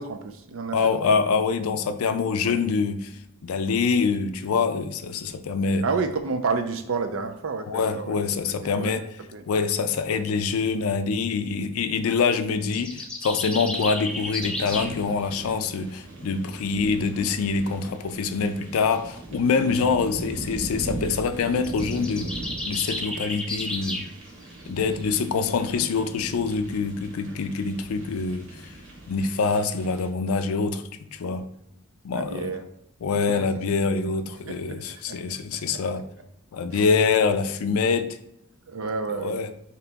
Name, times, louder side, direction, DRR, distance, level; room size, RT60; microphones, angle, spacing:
voice 1, 0.0-1.0 2.4-2.6 5.8-8.2 8.5-8.9 9.3-9.4 19.6-19.9 20.4-20.5 32.1-32.7 33.2-33.5 34.5-35.3 35.6-35.8 36.7-36.9 38.7-39.5, right 4 dB, 75° right, 0.5 m, -31 dB
voice 2, 0.7-3.1 3.4-5.9 7.7-9.1 9.5-22.4 22.7-24.0 24.7-28.7 29.1-30.8 31.1-31.5 32.0-32.5 33.0-36.1 36.5-38.2 39.1-39.5, left 5 dB, 85° left, 0.4 m, -25 dB
sound 1, 12.6-14.9 21.5-24.1, left 1 dB, 5° left, 0.4 m, -32 dB
sound 2, 13.7-30.1, right 2 dB, 60° right, 1.1 m, -39 dB
3.8 x 2.9 x 3.4 m
head